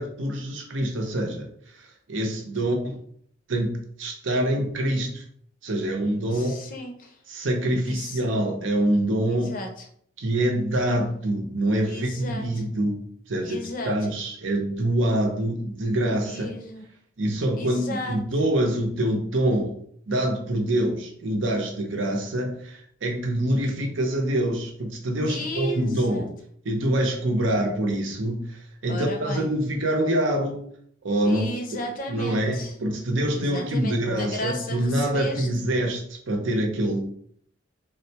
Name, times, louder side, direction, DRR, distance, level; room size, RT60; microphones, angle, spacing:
voice 1, 0.0-3.0 3.5-5.2 5.6-6.6 7.3-9.5 10.2-13.0 13.3-16.5 17.2-19.7 20.1-26.3 26.6-30.6 31.0-31.8 32.1-37.0, right 1 dB, 75° right, 2 dB, 0.7 m, -25 dB
voice 2, 6.3-7.2 7.7-8.2 9.3-9.9 11.9-12.5 13.4-13.9 16.2-16.8 17.6-18.2 25.2-26.3 28.9-29.5 31.2-32.7 33.3-35.5, left 1 dB, 45° left, 3 dB, 0.5 m, -34 dB
3.8 x 2.1 x 2.8 m, 0.63 s
head